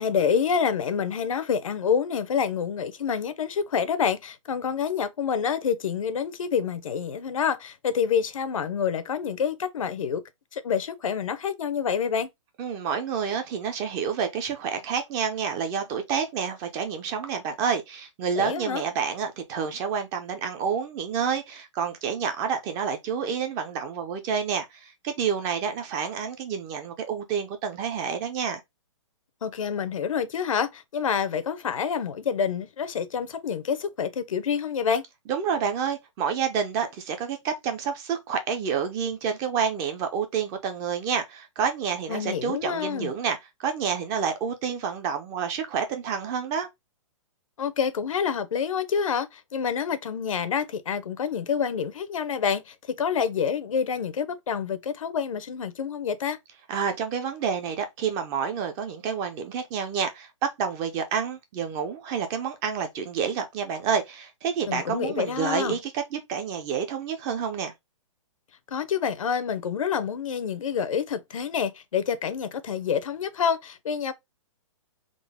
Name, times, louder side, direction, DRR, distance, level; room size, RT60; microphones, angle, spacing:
voice 1, 0.0-10.2 10.5-12.3 18.4-18.8 29.4-35.0 42.1-43.1 47.6-56.4 64.7-65.7 68.7-74.1, left 7 dB, 85° left, 0.7 m, -27 dB
voice 2, 12.6-28.6 35.3-46.7 56.7-67.7, right 6 dB, 20° right, 0.4 m, -29 dB
3.7 x 2.1 x 3.5 m
hypercardioid pair, 160°, 17 cm